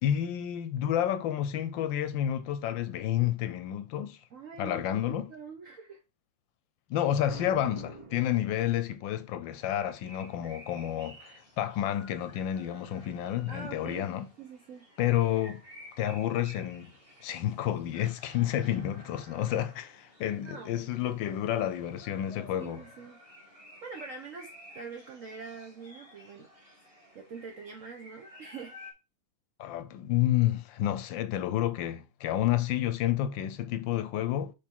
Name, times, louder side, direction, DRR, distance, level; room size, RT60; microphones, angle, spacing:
voice 1, 0.0-4.2 4.6-5.3 6.9-14.2 15.0-15.6 16.0-16.9 17.2-22.8 29.6-34.5, left 12 dB, 75° left, 1.3 m, -30 dB
voice 2, 4.3-6.0 13.5-14.1 14.4-14.9 20.3-20.9 22.5-23.2 23.8-26.5 27.1-28.8, right 5 dB, 65° right, 0.8 m, -44 dB
Boom, 7.2-9.1, right 3 dB, 50° right, 0.4 m, -46 dB
sound 1, 9.5-28.9, equal, 20° right, 1.7 m, -53 dB
6.2 x 3.5 x 4.4 m
omnidirectional pair, 2.2 m